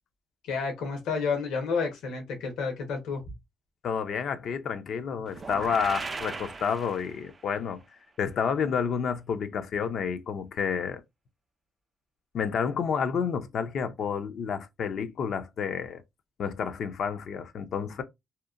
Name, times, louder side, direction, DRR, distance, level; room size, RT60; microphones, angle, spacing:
voice 1, 0.4-3.2, left 5 dB, 85° left, 0.8 m, -30 dB
voice 2, 3.8-7.8 8.2-11.0 12.3-16.0 16.4-18.0, left 6 dB, 65° left, 0.4 m, -30 dB
sound 1, 5.3-7.5, right 4 dB, 30° right, 0.4 m, -38 dB
2.8 x 2.1 x 2.4 m
cardioid pair, 90°, 0 cm